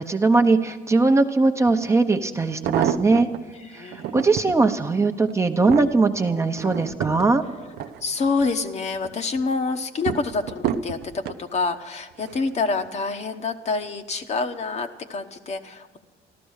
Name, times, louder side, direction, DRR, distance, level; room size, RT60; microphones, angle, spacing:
voice 1, 0.0-3.3 3.7-3.9 4.1-7.4, right 3 dB, 15° right, 6 dB, 0.8 m, -20 dB
sound 1, 1.7-1.8 2.4-3.4 3.9-4.6 5.1-8.5 8.9-9.4 10.1-11.4 12.2-12.5 12.8-12.9, right 9 dB, 75° right, 0.7 m, -29 dB
voice 2, 3.7-4.3 8.0-16.0, left 4 dB, 40° left, 7 dB, 1.1 m, -27 dB
14.0 x 12.0 x 6.4 m, 1.4 s
cardioid pair, 110°, 17 cm